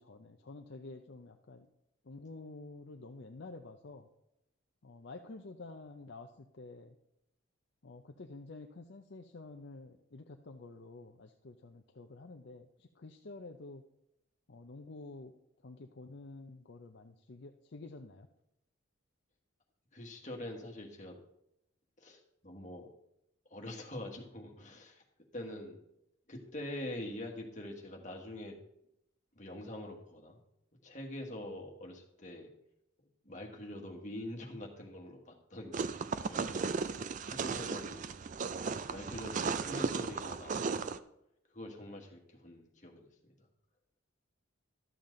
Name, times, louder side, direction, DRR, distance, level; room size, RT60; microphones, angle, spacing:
voice 1, 0.0-1.7 2.1-4.1 4.8-6.9 7.8-13.8 14.5-15.3 15.6-18.3, left 3 dB, 55° left, 4 dB, 0.6 m, -49 dB
voice 2, 19.9-21.2 22.0-22.9 23.5-25.0 25.3-25.8 26.3-28.5 29.3-30.4 30.8-32.5 33.0-36.9 37.2-38.0 38.8-40.9 41.5-43.5, left 1 dB, 35° left, 1 dB, 1.6 m, -45 dB
sound 1, 35.7-41.0, right 5 dB, 35° right, 0.3 m, -36 dB
12.5 x 7.3 x 3.8 m, 0.81 s
head